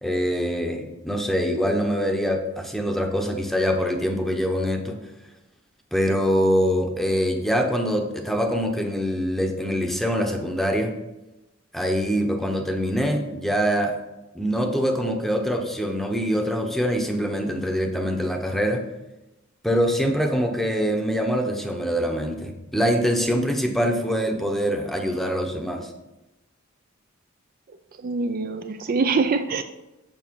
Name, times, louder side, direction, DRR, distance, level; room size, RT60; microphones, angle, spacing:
voice 1, 0.0-5.0 5.9-10.9 11.7-13.9 14.3-18.8 19.6-25.9, equal, ahead, 3 dB, 0.8 m, -24 dB
voice 2, 28.0-29.6, right 4 dB, 45° right, 8 dB, 0.4 m, -24 dB
7.1 x 6.5 x 4.6 m, 0.98 s
head